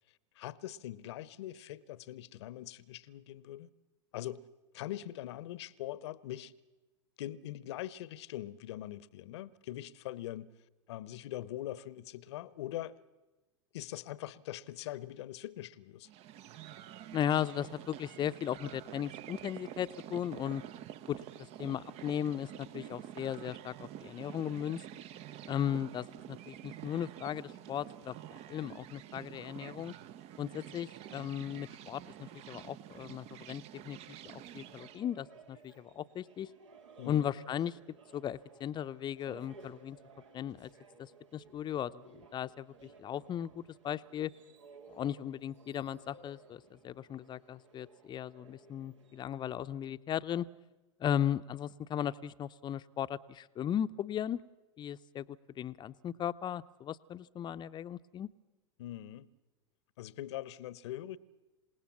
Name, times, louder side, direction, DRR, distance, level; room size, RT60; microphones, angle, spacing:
voice 1, 0.4-3.7 4.1-4.4 4.7-6.5 7.2-10.5 10.9-13.0 13.7-16.1 37.0-37.3 58.8-59.3 60.0-61.2, left 13 dB, 65° left, 0.9 m, -42 dB
sound 1, 16.1-35.0, right 11 dB, 40° right, 0.8 m, -48 dB
voice 2, 17.1-20.6 21.1-21.2 21.6-24.8 25.4-28.1 28.5-29.9 30.4-36.5 37.1-37.8 38.1-40.0 40.3-40.7 41.0-44.3 44.9-50.5 51.0-54.4 54.8-55.3 55.6-58.3, left 10 dB, 30° left, 0.7 m, -37 dB
sound 2, 34.4-49.6, right 4 dB, 75° right, 2.7 m, -58 dB
27.5 x 18.0 x 7.3 m
hypercardioid pair, 90°, 15 cm